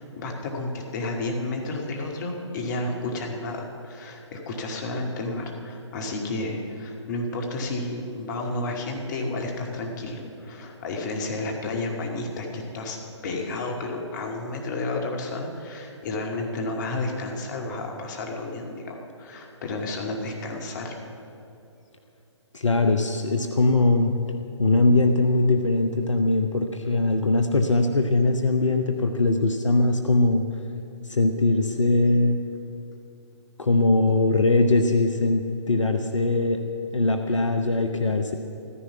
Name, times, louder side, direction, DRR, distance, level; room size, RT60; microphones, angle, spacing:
voice 1, 0.0-13.0 13.2-20.9, left 2 dB, 35° left, 1 dB, 2.2 m, -31 dB
voice 2, 22.5-24.2 24.6-30.5 31.0-32.4 33.6-36.6 36.9-38.4, left 2 dB, 75° left, 5 dB, 1.0 m, -21 dB
14.5 x 14.0 x 5.9 m, 2.8 s
figure-of-eight pair, 135°, 16 cm